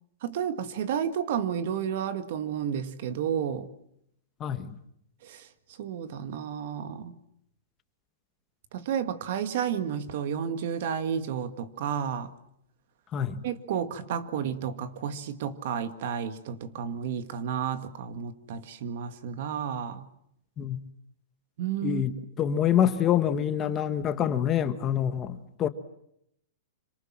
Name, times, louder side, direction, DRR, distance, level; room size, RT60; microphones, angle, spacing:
voice 1, 0.2-3.7 5.2-5.5 5.8-7.2 8.7-12.3 13.4-20.1 21.6-22.0, right 8 dB, 50° right, 1.9 m, -31 dB
voice 2, 4.4-4.7 13.1-13.4 20.6-20.8 21.8-22.1 22.4-25.7, left 9 dB, 20° left, 1.3 m, -26 dB
26.5 x 26.0 x 7.5 m
hypercardioid pair, 165°, 0 cm